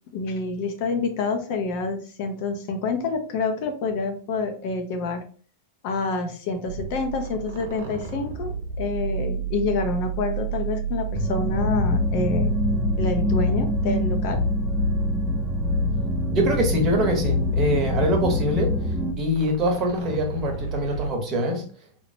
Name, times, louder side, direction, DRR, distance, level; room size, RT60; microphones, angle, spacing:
voice 1, 0.1-5.2 5.8-12.5 13.0-14.4, left 3 dB, 55° left, 6 dB, 0.6 m, -27 dB
sound 1, 6.6-21.1, right 9 dB, 75° right, 0.8 m, -31 dB
sound 2, 11.1-19.1, left 3 dB, ahead, 0.4 m, -25 dB
voice 2, 16.3-21.6, equal, 30° right, 2 dB, 0.9 m, -24 dB
3.0 x 2.0 x 2.6 m, 0.42 s
supercardioid pair, 140°, 0 cm